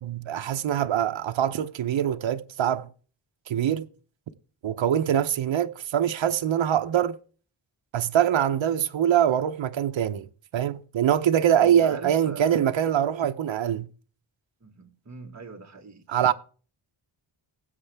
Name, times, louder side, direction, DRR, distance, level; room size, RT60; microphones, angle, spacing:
voice 1, 0.0-2.9 3.5-3.9 4.6-7.2 7.9-10.3 10.5-13.9 16.1-16.3, right 10 dB, 70° right, 0.7 m, -24 dB
voice 2, 11.6-12.6 14.6-16.3, right 5 dB, 35° right, 1.5 m, -42 dB
19.0 x 8.1 x 3.4 m
wide cardioid pair, 145°, 49 cm